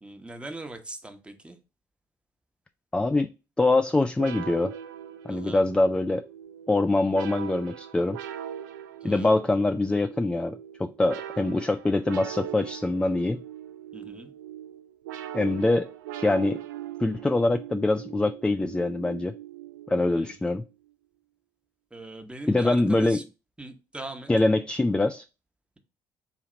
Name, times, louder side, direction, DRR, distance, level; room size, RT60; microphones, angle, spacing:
voice 1, 0.0-1.6 5.3-5.7 9.0-9.3 13.9-14.3 20.1-20.5 21.9-23.2 23.6-24.3, right 2 dB, 10° right, 1.0 m, -40 dB
voice 2, 2.9-3.3 3.6-4.7 5.2-6.2 6.7-8.2 9.0-13.4 15.3-15.9 16.2-16.6 17.0-19.3 19.9-20.6 22.5-23.2 24.3-25.2, left 2 dB, 10° left, 0.3 m, -24 dB
sound 1, 4.2-20.4, right 11 dB, 80° right, 0.4 m, -40 dB
4.3 x 2.8 x 3.8 m
hypercardioid pair, 50°, 10 cm